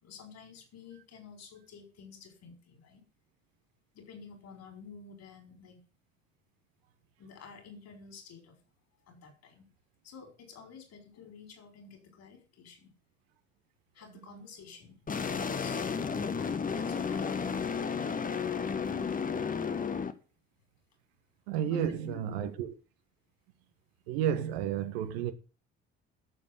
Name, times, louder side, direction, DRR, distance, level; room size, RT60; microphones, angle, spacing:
voice 1, 0.0-3.0 3.9-5.8 7.2-8.5 9.1-9.7 10.0-12.9 13.9-15.0 15.3-15.8 16.7-17.6 19.1-19.7 21.7-22.5, left 6 dB, 50° left, 5.6 m, -51 dB
sound 1, 15.1-20.1, left 6 dB, 25° left, 1.3 m, -32 dB
voice 2, 21.5-22.7 24.1-25.3, right 9 dB, 65° right, 1.4 m, -31 dB
12.0 x 7.6 x 7.8 m
figure-of-eight pair, 50°, 33 cm